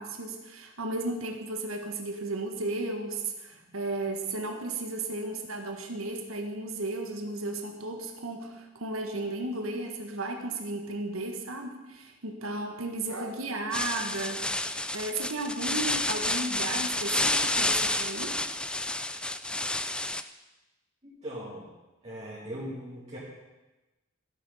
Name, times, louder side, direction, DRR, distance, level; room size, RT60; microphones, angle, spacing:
voice 1, 0.0-14.4 14.9-18.3, right 2 dB, 85° right, 3 dB, 1.6 m, -34 dB
sound 1, 13.7-20.2, left 1 dB, 5° left, 0.4 m, -30 dB
voice 2, 21.0-21.7 22.0-23.2, equal, 30° right, -8 dB, 2.5 m, -39 dB
14.0 x 8.5 x 5.6 m, 1.1 s
head